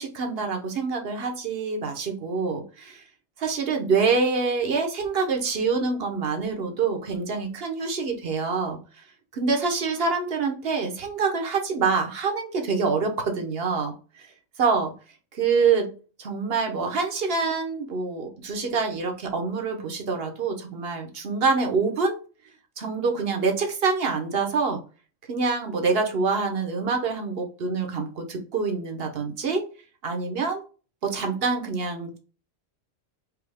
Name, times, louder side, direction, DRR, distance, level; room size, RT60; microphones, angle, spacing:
voice 1, 0.0-3.0 3.4-8.8 9.3-14.3 14.6-14.9 15.3-15.9 16.2-22.2 22.8-24.8 25.3-29.6 30.0-30.6 31.0-32.2, right 4 dB, 55° right, 4 dB, 1.1 m, -26 dB
4.7 x 2.9 x 3.4 m, 0.36 s
omnidirectional pair, 1.3 m